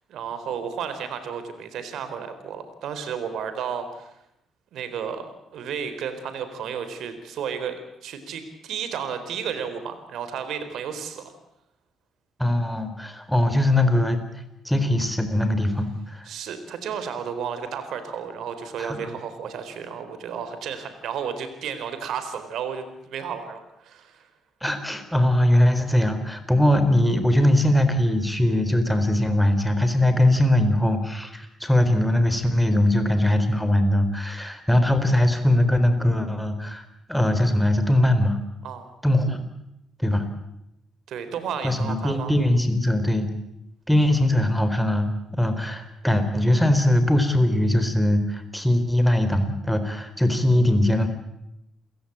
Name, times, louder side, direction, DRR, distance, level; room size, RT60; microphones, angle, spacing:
voice 1, 0.1-4.1 4.7-11.4 16.2-24.3 38.6-38.9 41.1-42.3, right 7 dB, 75° right, 10 dB, 3.8 m, -33 dB
voice 2, 12.4-14.2 14.6-16.3 18.8-19.1 24.6-36.8 37.1-38.4 39.0-39.4 40.0-40.3 41.6-43.3 43.9-45.1 45.4-51.1, left 1 dB, ahead, 8 dB, 4.0 m, -21 dB
29.0 x 16.5 x 8.7 m, 0.84 s
cardioid pair, 90°, 0 cm